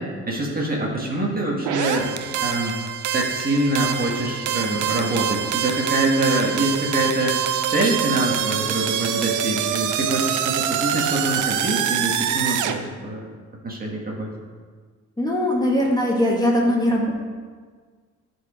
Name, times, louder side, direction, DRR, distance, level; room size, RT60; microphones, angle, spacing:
voice 1, 0.0-2.7 3.1-7.4 7.7-13.3 13.6-14.3, right 1 dB, 30° right, -2 dB, 1.7 m, -25 dB
sound 1, 1.6-12.8, right 9 dB, 80° right, 0.6 m, -25 dB
voice 2, 15.2-17.1, left 1 dB, 15° left, -3 dB, 1.8 m, -20 dB
10.5 x 4.7 x 5.0 m, 1.6 s
cardioid pair, 90°, 30 cm